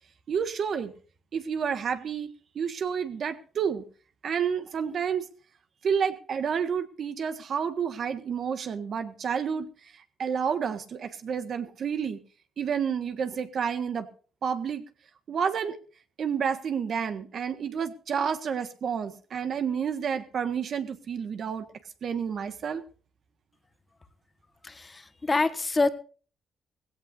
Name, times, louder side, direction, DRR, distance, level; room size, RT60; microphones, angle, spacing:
voice 1, 0.3-0.9 1.3-2.3 2.5-3.8 4.2-5.3 5.8-9.7 10.2-12.2 12.6-14.1 14.4-14.8 15.3-15.8 16.2-21.6 22.0-22.8, right 7 dB, 55° right, 1.5 m, -30 dB
voice 2, 24.6-25.9, left 3 dB, 25° left, 1.4 m, -26 dB
18.5 x 16.5 x 2.6 m
cardioid pair, 90°, 0 cm